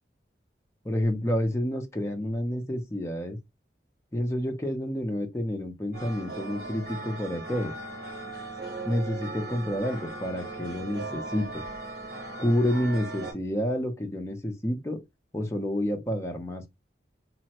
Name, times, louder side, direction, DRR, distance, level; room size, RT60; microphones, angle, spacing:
voice 1, 0.8-3.4 4.1-7.7 8.9-11.6 12.4-15.0 15.3-16.7, equal, 15° left, 0.5 m, -29 dB
sound 1, 5.9-13.3, right 2 dB, 55° right, 1.1 m, -38 dB
3.2 x 2.1 x 2.8 m
head